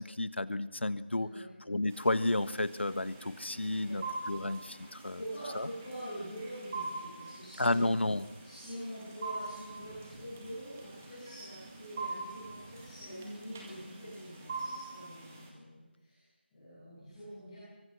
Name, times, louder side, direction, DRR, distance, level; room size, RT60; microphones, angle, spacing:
voice 1, 0.0-1.3 1.7-5.2 5.5-5.7 7.6-8.3, left 2 dB, 80° left, 15 dB, 1.5 m, -32 dB
voice 2, 1.1-1.5 3.8-4.0 4.8-7.8 8.4-16.2 16.5-17.6, equal, 10° left, -16 dB, 7.7 m, -45 dB
sound 1, 1.9-15.5, right 3 dB, 10° right, 1.8 m, -44 dB
24.0 x 23.5 x 6.3 m, 1.3 s
figure-of-eight pair, 180°, 6 cm